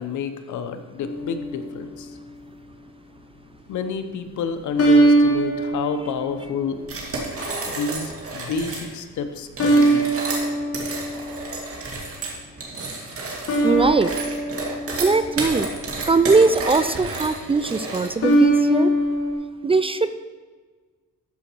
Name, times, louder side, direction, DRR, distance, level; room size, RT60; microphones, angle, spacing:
voice 1, 0.0-2.1 3.7-6.9 7.7-10.1, left 5 dB, 75° left, 8 dB, 1.0 m, -29 dB
sound 1, 1.0-1.8 4.8-6.8 7.4-7.9 9.6-11.6 13.5-15.9 18.2-19.3, right 2 dB, 50° left, 2.0 m, -21 dB
sound 2, 6.8-8.9 9.5-18.3, right 3 dB, 50° right, 2.2 m, -31 dB
voice 2, 13.6-14.1 15.0-15.7 16.1-18.9 19.6-20.2, right 3 dB, 20° right, 12 dB, 0.4 m, -20 dB
13.0 x 5.1 x 4.6 m, 1.4 s
cardioid pair, 90°, 30 cm